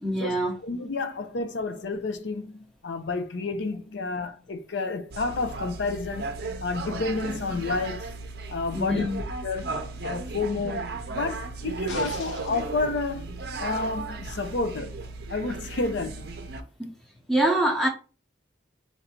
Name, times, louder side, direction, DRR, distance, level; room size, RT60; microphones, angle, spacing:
voice 1, 0.0-0.5 8.7-9.2 16.8-16.9 17.3-17.9, right 1 dB, ahead, 0.8 m, -24 dB
voice 2, 0.6-6.3 6.6-8.1 8.5-9.1 9.4-9.7 10.0-13.3 13.6-15.0 15.3-16.3, left 3 dB, 65° left, 0.5 m, -30 dB
sound 1, 5.1-16.6, right 3 dB, 55° right, 0.6 m, -35 dB
sound 2, 11.9-12.7 14.3-14.4, left 3 dB, 80° left, 1.0 m, -39 dB
4.5 x 2.6 x 4.3 m
head